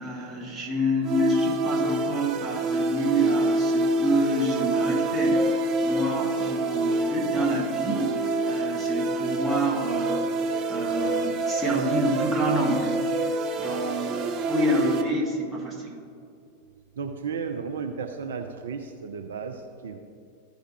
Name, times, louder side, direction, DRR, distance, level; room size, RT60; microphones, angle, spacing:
voice 1, 0.0-10.3 10.7-16.0, right 1 dB, 15° right, -3 dB, 1.4 m, -28 dB
sound 1, 1.0-15.0, right 2 dB, 35° right, 0.8 m, -26 dB
voice 2, 17.0-20.0, right 5 dB, 60° right, 4 dB, 0.5 m, -34 dB
13.5 x 5.0 x 3.2 m, 2.5 s
figure-of-eight pair, 90°, 0 cm